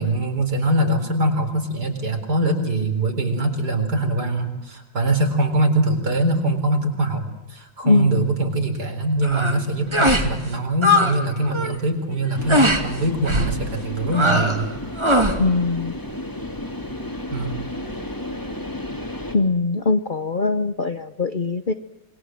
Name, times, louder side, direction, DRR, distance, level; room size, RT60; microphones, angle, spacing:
voice 1, 0.0-7.2 7.5-14.7 17.3-17.6, right 1 dB, 55° right, 6 dB, 4.7 m, -22 dB
voice 2, 7.8-8.3 15.4-16.0 19.3-21.7, left 3 dB, 40° left, 11 dB, 0.7 m, -21 dB
sound 1, 9.2-9.6 9.9-10.3 10.6-11.2 11.4-11.8 12.5-12.8 13.3-13.5 14.1-14.6 15.0-15.4, equal, 15° right, 2.4 m, -19 dB
sound 2, 12.4-19.4, left 1 dB, 10° left, 2.5 m, -32 dB
27.5 x 22.0 x 7.7 m, 0.98 s
omnidirectional pair, 2.1 m